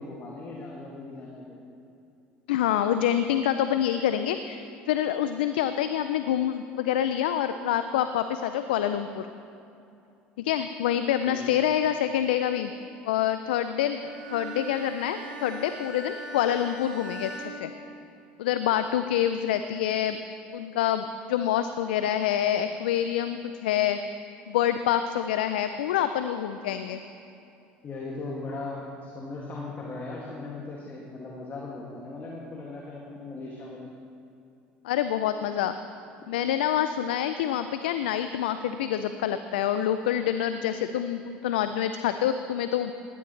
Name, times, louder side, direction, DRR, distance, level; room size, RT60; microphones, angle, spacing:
voice 1, 0.0-1.6 11.2-11.6 27.8-33.8 36.2-36.3, left 3 dB, 40° left, -3 dB, 2.3 m, -38 dB
voice 2, 2.5-9.3 10.4-12.7 13.1-17.7 18.4-20.2 20.5-24.0 24.5-27.0 34.8-35.8 36.3-42.9, left 10 dB, 80° left, 10 dB, 0.5 m, -26 dB
Bowed string instrument, 14.0-18.5, right 1 dB, 75° right, 1.5 m, -41 dB
18.5 x 12.5 x 3.3 m, 2.7 s
hypercardioid pair, 70°, 5 cm